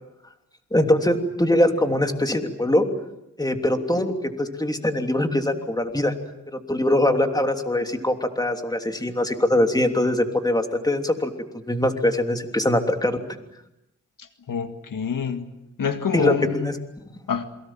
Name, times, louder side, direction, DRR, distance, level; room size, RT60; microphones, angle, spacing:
voice 1, 0.7-2.9 3.4-6.1 6.7-11.3 11.7-13.2 16.1-16.7, left 1 dB, 10° left, 5 dB, 3.1 m, -22 dB
voice 2, 14.5-15.5 15.8-16.7 17.3-17.5, left 6 dB, 75° left, 7 dB, 2.0 m, -26 dB
28.0 x 23.0 x 7.6 m, 0.88 s
cardioid pair, 75°, 33 cm